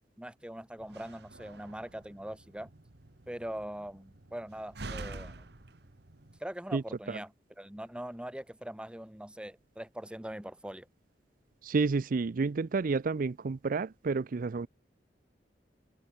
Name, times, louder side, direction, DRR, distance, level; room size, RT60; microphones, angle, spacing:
voice 1, 0.2-2.7 3.3-5.5 6.4-7.3 7.6-10.9, right 1 dB, 5° right, 1.1 m, -42 dB
Slam, 0.8-6.4, right 2 dB, 70° right, 1.6 m, -47 dB
voice 2, 6.7-7.2 11.6-14.7, right 4 dB, 50° right, 0.5 m, -30 dB
head